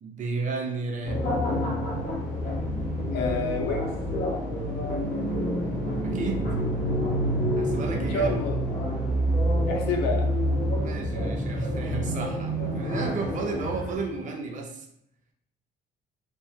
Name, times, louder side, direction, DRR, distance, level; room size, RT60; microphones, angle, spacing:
voice 1, 0.0-1.2 6.0-6.5 7.6-8.4 10.7-14.8, right 3 dB, 45° right, 2 dB, 0.6 m, -33 dB
sound 1, 1.0-14.0, equal, 50° left, 1.0 m, -28 dB
sound 2, 2.3-10.6, left 1 dB, 5° right, 0.6 m, -34 dB
voice 2, 3.1-3.9 8.0-8.6 9.7-10.3, left 3 dB, 85° left, 3 dB, 0.5 m, -28 dB
2.7 x 2.3 x 2.6 m, 0.74 s
cardioid pair, 110°, 17 cm